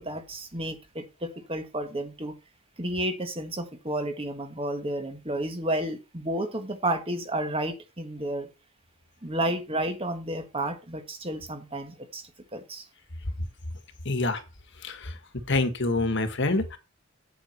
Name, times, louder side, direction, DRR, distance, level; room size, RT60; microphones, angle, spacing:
voice 1, 0.0-2.3 2.8-8.5 9.2-12.8, right 1 dB, 25° right, 1.6 m, -31 dB
voice 2, 14.0-14.4 14.8-15.1 15.5-16.8, left 2 dB, 55° left, 1.4 m, -26 dB
8.5 x 7.9 x 4.4 m
head